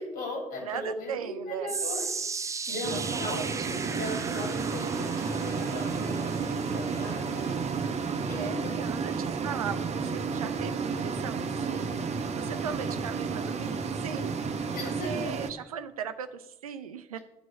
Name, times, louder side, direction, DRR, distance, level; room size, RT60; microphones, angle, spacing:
voice 1, 0.0-2.1 2.4-7.5 8.3-8.9 14.7-15.1, left 2 dB, 55° left, 1 dB, 2.9 m, -38 dB
voice 2, 0.6-1.7 2.7-3.7 8.3-12.0 12.4-17.2, right 8 dB, 85° right, 11 dB, 0.5 m, -38 dB
sound 1, 1.7-14.0 14.3-14.7 15.3-15.4, right 4 dB, 15° right, 0.4 m, -39 dB
sound 2, 2.8-15.5, right 5 dB, 40° right, 0.8 m, -32 dB
9.9 x 4.7 x 6.3 m, 0.86 s
figure-of-eight pair, 45°, 18 cm